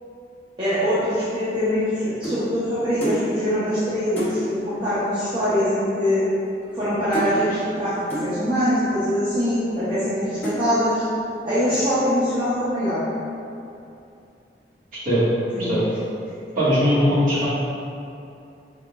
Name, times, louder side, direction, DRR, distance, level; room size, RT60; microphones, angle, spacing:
voice 1, 0.6-6.3 6.7-11.0 11.4-13.0 15.6-15.7, equal, 25° right, -13 dB, 0.8 m, -23 dB
sound 1, 1.3-2.5 3.0-3.3 3.7-3.8 4.1-4.4 5.3-5.4 5.6-5.9 6.2-6.9 7.1-7.4 8.1-8.3 9.0-9.1 9.7-10.1 10.4-10.7 11.2-11.4 11.7-12.1, right 1 dB, 10° left, 0.8 m, -31 dB
voice 2, 16.5-17.5, equal, 50° right, -11 dB, 1.5 m, -19 dB
5.0 x 3.8 x 2.3 m, 2.7 s
head